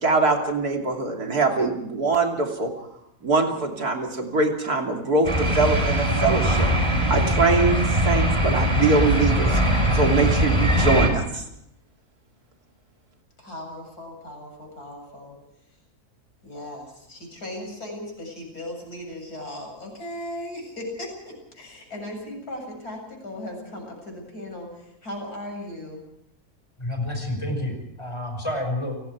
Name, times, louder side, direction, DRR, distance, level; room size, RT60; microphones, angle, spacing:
voice 1, 0.0-2.7 3.2-11.4, right 3 dB, 90° right, 2 dB, 3.5 m, -23 dB
sound 1, 5.2-11.1, equal, 20° right, 4.4 m, -21 dB
voice 2, 13.4-15.4 16.4-26.0, left 1 dB, 90° left, 1 dB, 8.2 m, -37 dB
voice 3, 26.8-28.9, left 1 dB, 20° left, 4 dB, 5.5 m, -29 dB
29.5 x 19.0 x 4.7 m, 0.79 s
omnidirectional pair, 1.6 m